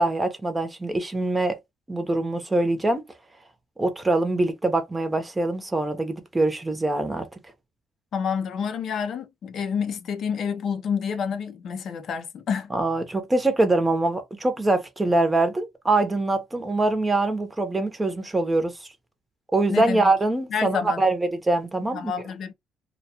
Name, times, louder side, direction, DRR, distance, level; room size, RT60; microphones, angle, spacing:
voice 1, 0.0-1.6 1.9-3.0 3.8-7.3 12.7-18.7 19.5-22.1, right 2 dB, 15° right, 0.7 m, -23 dB
voice 2, 8.1-12.7 19.7-20.1 20.5-21.0 21.9-22.5, left 6 dB, 60° left, 0.5 m, -28 dB
2.3 x 2.2 x 2.8 m
cardioid pair, 95°, 0 cm